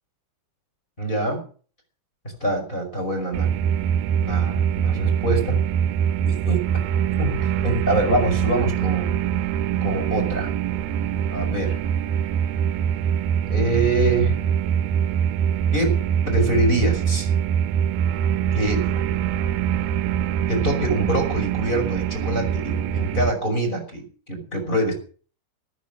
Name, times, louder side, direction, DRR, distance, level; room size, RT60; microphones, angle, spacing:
voice 1, 1.0-1.4 2.4-3.5 4.2-5.6 6.3-6.6 7.2-9.2 9.8-10.5 11.3-11.8 13.5-14.4 15.7-17.3 18.5-19.0 20.5-24.9, right 1 dB, 10° left, 4 dB, 5.3 m, -25 dB
sound 1, 3.3-23.3, right 9 dB, 80° right, 2.7 m, -23 dB
14.0 x 13.0 x 6.3 m, 0.41 s
omnidirectional pair, 4.5 m